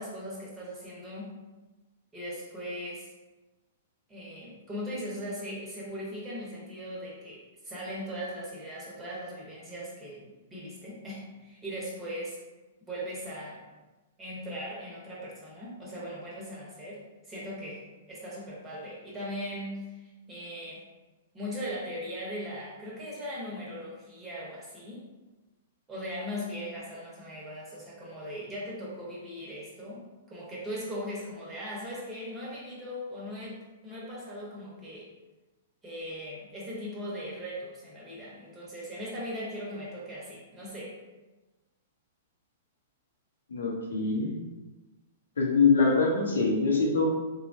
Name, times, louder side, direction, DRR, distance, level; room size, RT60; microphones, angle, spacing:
voice 1, 0.0-1.4 2.1-3.1 4.1-12.4 12.9-13.7 14.2-20.8 21.3-25.1 25.9-35.1 35.8-41.0, equal, 15° right, -6 dB, 1.0 m, -39 dB
voice 2, 43.5-44.3 45.4-47.1, left 4 dB, 85° left, -2 dB, 0.8 m, -24 dB
3.1 x 2.3 x 2.7 m, 1.2 s
hypercardioid pair, 130°, 0 cm